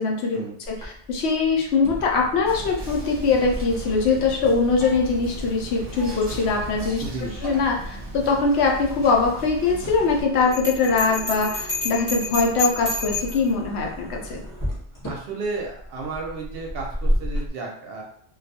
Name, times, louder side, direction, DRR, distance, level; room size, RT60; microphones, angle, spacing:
voice 1, 0.0-0.4 0.7-7.1 7.4-14.4, left 4 dB, 70° left, 0 dB, 0.8 m, -22 dB
sound 1, 0.6-17.5, equal, 20° left, 0.6 m, -35 dB
Whispering, 2.5-10.2, right 1 dB, 35° right, 0.8 m, -37 dB
voice 2, 7.0-7.3 15.1-18.0, right 3 dB, 65° right, -1 dB, 0.7 m, -32 dB
Bell, 10.5-13.5, left 3 dB, 45° left, 0.9 m, -29 dB
2.3 x 2.2 x 2.7 m, 0.62 s
omnidirectional pair, 1.2 m